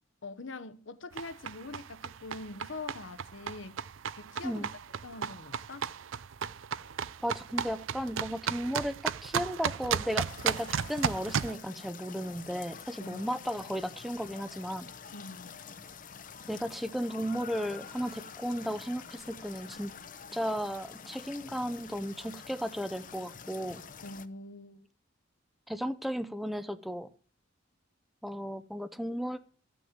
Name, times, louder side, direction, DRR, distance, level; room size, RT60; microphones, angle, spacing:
voice 1, 0.2-3.8 4.2-4.7 5.0-5.9 13.0-13.3 15.1-15.5 24.0-24.9, left 3 dB, 65° left, 1.0 m, -44 dB
sound 1, 1.1-11.5, right 7 dB, 70° right, 0.5 m, -35 dB
voice 2, 7.2-14.9 16.5-19.9 20.3-23.8 25.7-27.1 28.2-29.4, equal, ahead, 0.7 m, -35 dB
sound 2, 10.3-24.3, left 6 dB, 40° left, 0.8 m, -47 dB
14.5 x 6.2 x 8.0 m
head